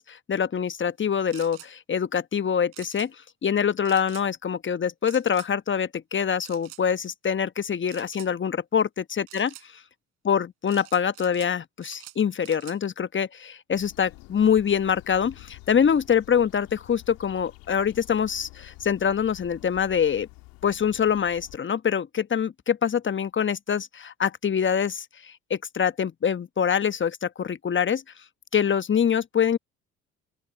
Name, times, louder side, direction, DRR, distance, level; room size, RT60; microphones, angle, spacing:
voice 1, 0.0-3.1 3.4-9.5 10.2-20.3 20.6-28.0 28.5-29.6, left 7 dB, 30° left, 1.1 m, -25 dB
sound 1, 1.3-1.7 2.7-3.1 3.9-4.3 5.0-5.5 6.4-6.8 7.9-8.3 9.3-9.7 10.7-11.5 11.8-12.8, right 38 dB, 75° right, 7.7 m, -46 dB
sound 2, 13.7-21.6, left 22 dB, 70° left, 2.1 m, -49 dB
open air
hypercardioid pair, 55°, 36 cm